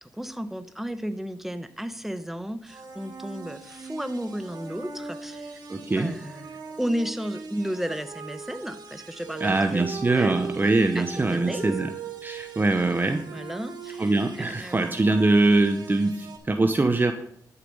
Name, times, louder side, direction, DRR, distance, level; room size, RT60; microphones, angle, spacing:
voice 1, 0.0-5.6 5.9-9.9 10.1-10.4 10.9-11.9 13.3-15.1, equal, 5° right, 11 dB, 1.0 m, -33 dB
sound 1, 2.7-16.4, right 5 dB, 90° right, 2.0 m, -40 dB
voice 2, 5.7-6.1 9.4-11.9 12.2-13.2 14.0-17.1, right 2 dB, 30° right, 6 dB, 0.9 m, -23 dB
12.0 x 6.9 x 5.5 m, 0.71 s
cardioid pair, 85°, 7 cm